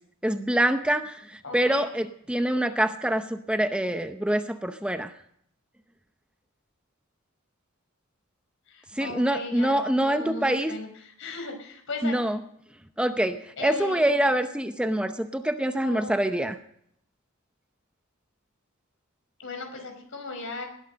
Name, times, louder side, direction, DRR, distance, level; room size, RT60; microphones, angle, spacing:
voice 1, 0.2-5.1 8.9-10.7 12.0-12.4 13.0-16.6, right 1 dB, 5° right, 8 dB, 0.7 m, -25 dB
voice 2, 1.4-1.9 8.7-12.1 13.6-14.1 15.8-16.1 19.4-20.7, left 3 dB, 65° left, 5 dB, 4.9 m, -37 dB
19.5 x 12.0 x 5.2 m, 0.70 s
head